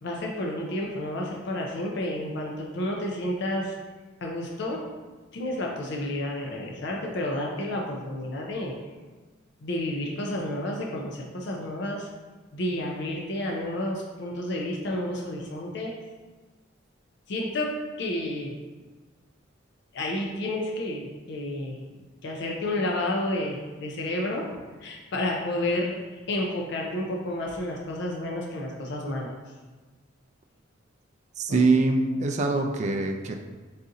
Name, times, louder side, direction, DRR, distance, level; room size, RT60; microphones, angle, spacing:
voice 1, 0.0-3.8 4.2-4.8 5.3-8.7 9.6-12.1 12.5-15.9 17.3-18.5 19.9-21.8 22.2-26.0 26.3-29.3 31.5-31.6, left 1 dB, 60° left, -1 dB, 0.5 m, -30 dB
voice 2, 31.4-33.3, right 3 dB, 35° right, 3 dB, 0.3 m, -23 dB
4.0 x 2.6 x 3.7 m, 1.3 s
head